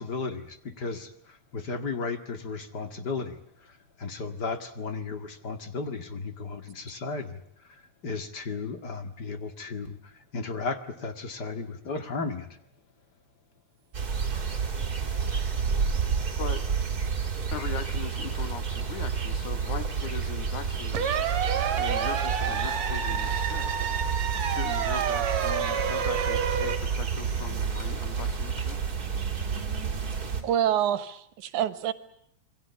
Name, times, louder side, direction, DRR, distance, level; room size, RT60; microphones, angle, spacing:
voice 1, 0.0-12.5, left 4 dB, 35° left, 8 dB, 2.3 m, -35 dB
sound 1, 13.9-30.4, right 6 dB, 30° right, 3.8 m, -30 dB
voice 2, 17.5-21.1 21.7-23.7 24.4-28.9, left 8 dB, 85° left, 10 dB, 3.3 m, -39 dB
sound 2, 20.9-26.8, right 7 dB, 65° right, 2.9 m, -29 dB
voice 3, 30.4-31.9, right 10 dB, 85° right, 14 dB, 2.7 m, -26 dB
27.5 x 23.0 x 8.2 m, 0.70 s
omnidirectional pair, 3.4 m